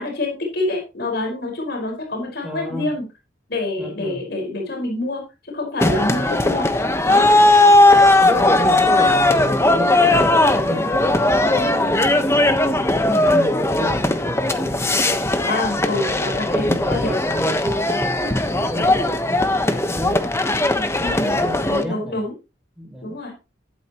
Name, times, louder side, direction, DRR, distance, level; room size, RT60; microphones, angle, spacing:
voice 1, 0.0-3.0 3.5-5.2 5.5-6.7 7.1-7.3 15.5-17.1 21.0-21.4 21.7-22.3 23.0-23.3, left 2 dB, 55° left, 1 dB, 5.1 m, -26 dB
voice 2, 2.4-2.9 3.8-4.2 5.9-6.3 8.2-14.8 15.7-20.3 21.2-22.2 22.8-23.2, equal, 5° right, 0 dB, 6.0 m, -30 dB
sound 1, 5.8-21.8, left 2 dB, 15° left, 1.2 m, -18 dB
13.5 x 12.0 x 3.1 m, 0.29 s
head